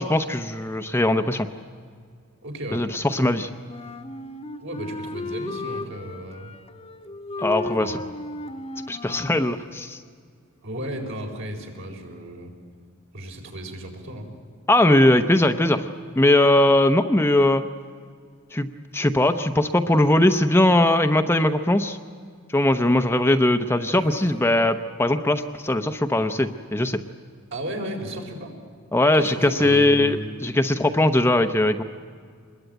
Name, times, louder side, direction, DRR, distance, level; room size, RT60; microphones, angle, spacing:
voice 1, 0.0-1.5 2.7-3.5 7.4-8.0 8.9-10.0 14.7-15.9 16.2-17.6 18.5-18.7 18.9-22.0 22.5-27.0 28.9-30.2 30.4-31.8, left 1 dB, 10° left, 7 dB, 0.7 m, -20 dB
voice 2, 2.4-2.9 4.6-6.6 7.8-8.0 10.6-12.5 13.1-14.3 23.9-24.8 27.5-28.5 29.0-30.3, right 1 dB, 65° right, 2 dB, 4.5 m, -34 dB
Wind instrument woodwind instrument, 3.7-9.5, left 2 dB, 30° left, 1.1 m, -35 dB
25.5 x 21.0 x 9.1 m, 2.1 s
head